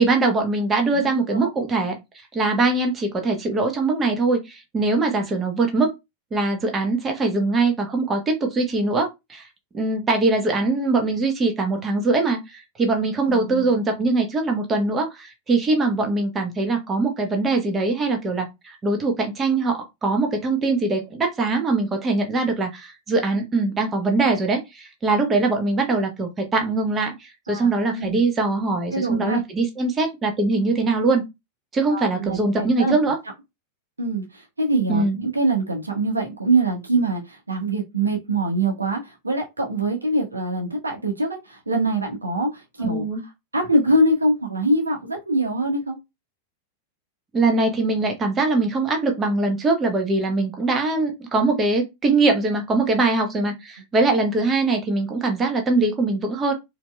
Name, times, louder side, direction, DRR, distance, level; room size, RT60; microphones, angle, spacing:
voice 1, 0.0-1.9 2.3-5.9 6.3-9.5 9.7-31.2 31.7-33.2 34.9-35.2 42.8-43.2 47.3-56.5, right 3 dB, 20° right, 0.9 m, -22 dB
voice 2, 0.9-1.5 13.3-13.7 27.5-28.2 28.9-29.4 31.9-33.0 34.0-43.0 43.5-46.0, right 2 dB, 80° right, 1.0 m, -24 dB
4.3 x 2.6 x 2.2 m
figure-of-eight pair, 90°, 0 cm